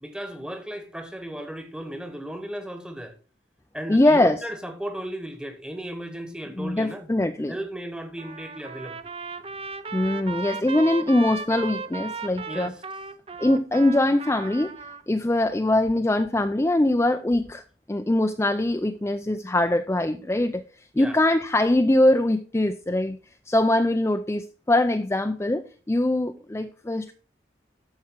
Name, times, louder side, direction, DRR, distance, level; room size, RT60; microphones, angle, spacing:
voice 1, 0.0-3.1 3.7-7.1 7.5-9.1 12.5-12.8 20.9-21.2, right 1 dB, 5° right, 1.2 m, -35 dB
voice 2, 3.9-4.4 6.6-7.5 9.9-12.7 13.4-14.7 15.1-17.6 17.9-20.6 21.0-23.2 23.5-27.1, left 1 dB, 15° left, 0.4 m, -22 dB
Trumpet, 8.2-15.0, right 4 dB, 30° right, 0.6 m, -36 dB
13.0 x 4.8 x 4.6 m
head